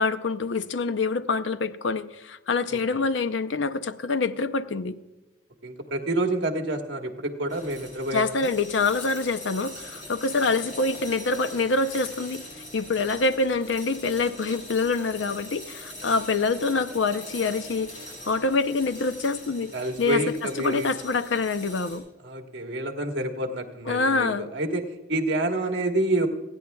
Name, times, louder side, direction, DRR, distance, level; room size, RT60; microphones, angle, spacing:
voice 1, 0.0-5.0 8.1-12.5 12.7-19.7 20.0-22.0 23.9-24.5, left 3 dB, 65° left, 0.6 m, -26 dB
voice 2, 5.6-8.5 19.7-20.9 22.2-26.3, right 1 dB, 60° right, 1.4 m, -28 dB
sound 1, 7.5-22.0, left 1 dB, 40° left, 5.5 m, -42 dB
29.5 x 9.9 x 2.3 m
head